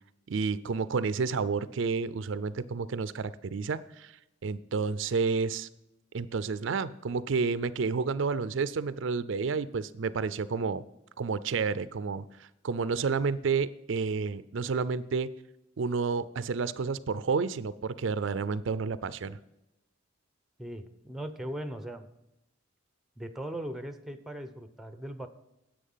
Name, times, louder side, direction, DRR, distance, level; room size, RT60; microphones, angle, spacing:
voice 1, 0.3-4.1 4.4-5.7 6.1-10.8 11.2-15.3 15.8-19.4, right 5 dB, 70° right, 15 dB, 0.4 m, -30 dB
voice 2, 20.6-22.1 23.2-25.3, right 1 dB, ahead, 9 dB, 0.7 m, -39 dB
10.0 x 7.9 x 5.6 m, 0.92 s
head